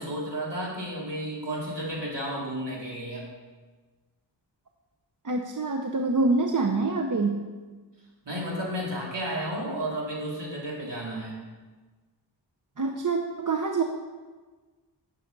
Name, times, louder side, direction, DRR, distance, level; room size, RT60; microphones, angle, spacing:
voice 1, 0.0-3.2 8.2-11.4, right 1 dB, 65° right, -4 dB, 3.0 m, -32 dB
voice 2, 5.2-7.4 12.8-13.8, right 3 dB, 45° right, 3 dB, 0.7 m, -26 dB
9.9 x 6.6 x 5.3 m, 1.3 s
wide cardioid pair, 55°, 45 cm